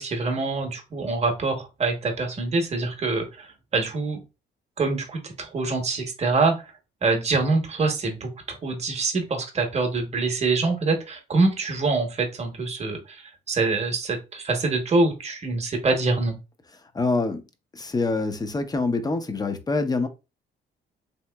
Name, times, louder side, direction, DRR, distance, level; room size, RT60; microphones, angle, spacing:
voice 1, 0.0-3.5 3.7-4.2 4.8-6.6 7.0-13.2 13.5-16.4, right 3 dB, 35° right, 0.9 m, -25 dB
voice 2, 16.9-17.4 17.7-20.1, left 3 dB, 20° left, 0.5 m, -25 dB
3.0 x 2.9 x 2.2 m
cardioid pair, 90°, 20 cm